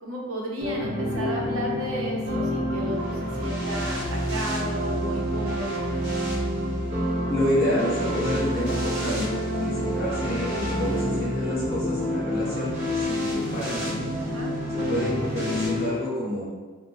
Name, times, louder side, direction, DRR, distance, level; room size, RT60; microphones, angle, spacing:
voice 1, 0.0-5.7 14.1-14.5, right 1 dB, 90° right, -2 dB, 0.7 m, -33 dB
sound 1, 0.6-15.9, equal, 35° right, 1.0 m, -28 dB
voice 2, 7.3-9.3 9.6-14.0 14.7-16.5, left 1 dB, 45° left, -8 dB, 1.2 m, -28 dB
3.8 x 2.1 x 2.7 m, 1.4 s
head